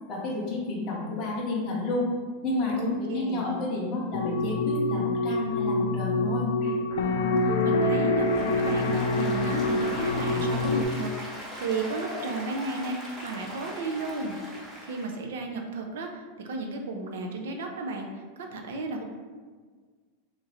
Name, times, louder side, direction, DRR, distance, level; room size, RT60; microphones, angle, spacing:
voice 1, 0.1-2.1 2.4-6.8, left 2 dB, 25° left, -4 dB, 0.6 m, -30 dB
voice 2, 2.8-3.5 7.5-14.4 14.8-19.0, right 3 dB, 80° right, 3 dB, 0.5 m, -34 dB
sound 1, 4.1-10.8, left 2 dB, 85° left, 0.4 m, -26 dB
Applause, 8.2-15.2, equal, 10° right, 0.7 m, -39 dB
3.0 x 2.5 x 4.0 m, 1.5 s
supercardioid pair, 175°, 0 cm